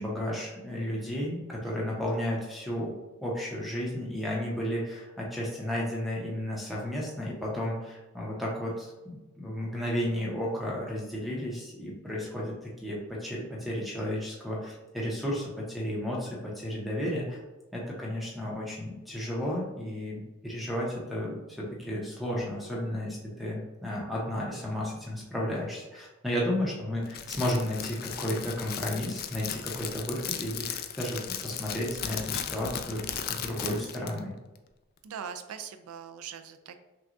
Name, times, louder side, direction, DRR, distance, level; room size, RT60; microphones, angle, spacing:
voice 1, 0.0-2.9 3.2-17.4 17.7-34.3, left 1 dB, ahead, -4 dB, 0.8 m, -33 dB
Crackle, 27.1-34.2, left 9 dB, 45° left, 0.3 m, -36 dB
voice 2, 35.0-36.8, right 7 dB, 90° right, 9 dB, 0.4 m, -41 dB
5.8 x 2.3 x 2.6 m, 1.1 s
head